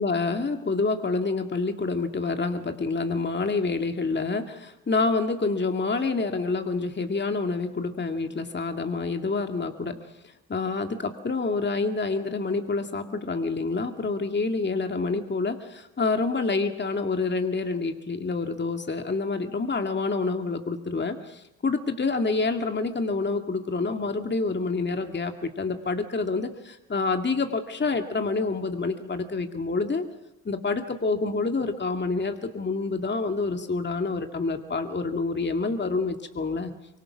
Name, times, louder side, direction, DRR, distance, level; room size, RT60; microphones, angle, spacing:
voice 1, 0.0-10.0 10.5-30.0 30.5-36.7, left 3 dB, 25° left, 6 dB, 2.1 m, -27 dB
24.5 x 24.0 x 6.1 m, 0.92 s
hypercardioid pair, 50°, 40 cm